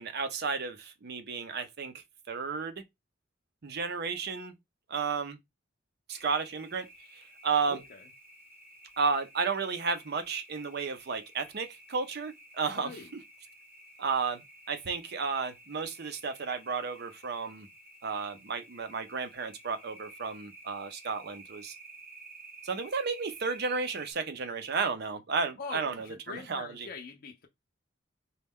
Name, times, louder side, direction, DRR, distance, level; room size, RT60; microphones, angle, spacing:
voice 1, 0.0-2.8 3.6-4.5 4.9-5.4 6.1-6.9 7.4-7.8 9.0-12.9 14.0-14.4 14.7-17.7 18.0-21.7 22.6-26.9, right 5 dB, 60° right, 0.6 m, -33 dB
sound 1, 6.1-24.1, right 2 dB, 10° right, 0.9 m, -53 dB
voice 2, 7.7-8.1 12.7-13.1 25.6-27.5, left 4 dB, 50° left, 0.5 m, -43 dB
4.1 x 2.3 x 3.5 m
head